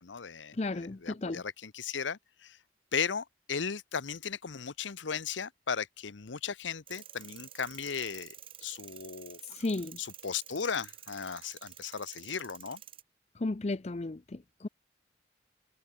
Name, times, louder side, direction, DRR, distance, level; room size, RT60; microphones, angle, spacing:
voice 1, 0.0-2.6 2.9-8.3 8.6-9.4 10.0-12.8, left 6 dB, 90° left, 0.9 m, -36 dB
voice 2, 0.5-1.4 9.5-10.0 13.4-14.7, left 2 dB, 35° left, 0.5 m, -34 dB
sound 1, 6.9-13.0, right 10 dB, 30° right, 1.8 m, -50 dB
head